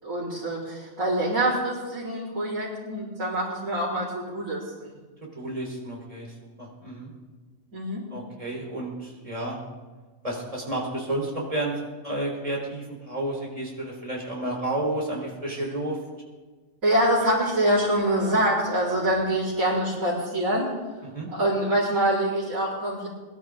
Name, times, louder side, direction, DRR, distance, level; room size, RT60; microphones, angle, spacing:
voice 1, 0.0-4.9 7.7-8.0 16.8-20.7 21.3-23.1, right 1 dB, 85° right, -12 dB, 5.1 m, -25 dB
voice 2, 5.4-7.1 8.1-9.6 10.2-11.7 12.0-16.0 21.0-21.3, right 1 dB, 25° right, -2 dB, 4.1 m, -31 dB
23.5 x 12.0 x 3.8 m, 1.3 s
omnidirectional pair, 1.4 m